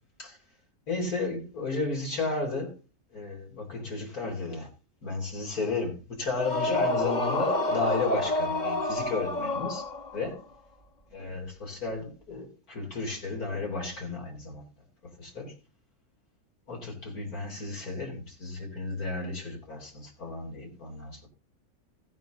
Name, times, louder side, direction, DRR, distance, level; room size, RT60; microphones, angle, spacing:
voice 1, 0.9-2.7 3.1-4.7 5.0-9.8 10.1-10.4 11.1-14.6 15.2-15.5 16.7-21.3, left 3 dB, 85° left, 4.0 m, -33 dB
sound 1, 6.3-10.3, left 2 dB, 35° left, 1.2 m, -29 dB
16.0 x 9.0 x 3.8 m
omnidirectional pair, 1.5 m